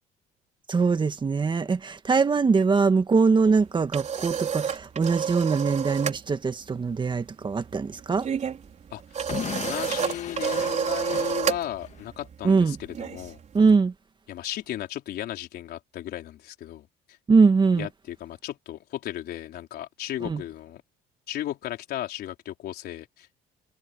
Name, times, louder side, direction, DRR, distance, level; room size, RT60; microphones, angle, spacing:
voice 1, 0.7-8.3 12.4-12.8 13.5-13.9 17.3-17.9 20.3-20.4, right 4 dB, 25° right, 1.7 m, -22 dB
sound 1, 3.5-6.2 6.5-6.8 7.1-13.7, right 7 dB, 45° right, 4.4 m, -30 dB
Explosion / Shatter, 9.3-12.1, left 8 dB, 45° left, 1.6 m, -36 dB
voice 2, 9.6-13.4 14.3-16.9 17.7-20.8 21.3-23.3, left 12 dB, 70° left, 4.3 m, -35 dB
cardioid pair, 110°, 17 cm